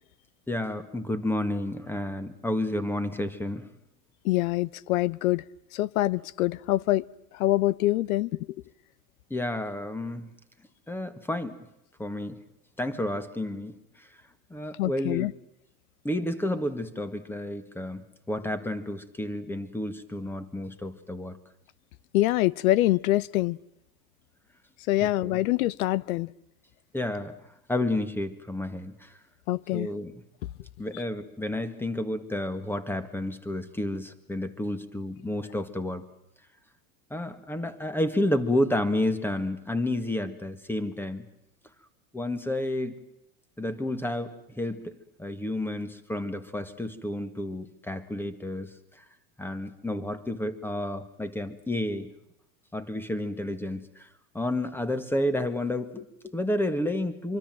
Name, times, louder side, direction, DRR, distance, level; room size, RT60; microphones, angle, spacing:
voice 1, 0.5-3.7 9.3-10.3 10.9-11.6 12.0-12.4 12.8-14.1 14.5-15.3 16.0-21.4 25.0-25.4 26.9-27.3 27.7-29.1 29.7-30.1 30.8-36.1 37.1-41.2 42.1-43.0 43.6-48.7 49.4-52.1 52.7-54.1 54.3-57.4, left 1 dB, 5° left, 12 dB, 1.8 m, -31 dB
voice 2, 4.2-5.4 5.7-7.0 7.3-8.3 14.8-15.3 22.1-23.6 24.9-26.3 29.5-29.9, left 16 dB, 80° left, 23 dB, 0.9 m, -25 dB
25.0 x 24.5 x 7.7 m, 0.80 s
supercardioid pair, 140°, 42 cm